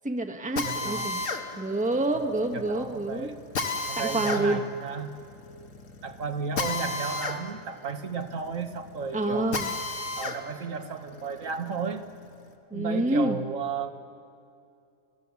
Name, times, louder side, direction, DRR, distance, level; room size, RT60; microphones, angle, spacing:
voice 1, 0.0-1.2 1.6-3.4 4.0-4.6 9.1-9.7 12.7-13.4, right 2 dB, 5° right, 5 dB, 1.1 m, -27 dB
voice 2, 0.5-1.1 2.5-3.4 3.9-5.2 6.0-9.6 10.1-12.0 12.7-13.9, right 5 dB, 70° right, 6 dB, 1.5 m, -33 dB
Drill, 0.6-10.4 10.8-12.4, left 3 dB, 70° left, 1.8 m, -34 dB
29.5 x 16.0 x 7.1 m, 2.6 s
omnidirectional pair, 1.4 m